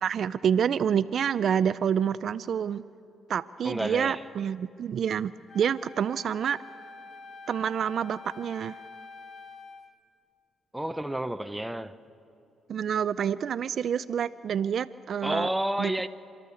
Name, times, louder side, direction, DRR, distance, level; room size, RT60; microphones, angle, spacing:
voice 1, 0.0-2.8 3.3-6.6 7.5-8.8 12.7-15.5 15.8-15.9, right 8 dB, 60° right, 0.4 m, -28 dB
voice 2, 3.6-4.2 10.7-12.0 15.2-16.1, right 1 dB, 5° right, 0.8 m, -30 dB
Wind instrument woodwind instrument, 5.5-9.9, left 4 dB, 35° left, 1.1 m, -47 dB
29.5 x 13.0 x 7.0 m
cardioid pair, 90°, 0 cm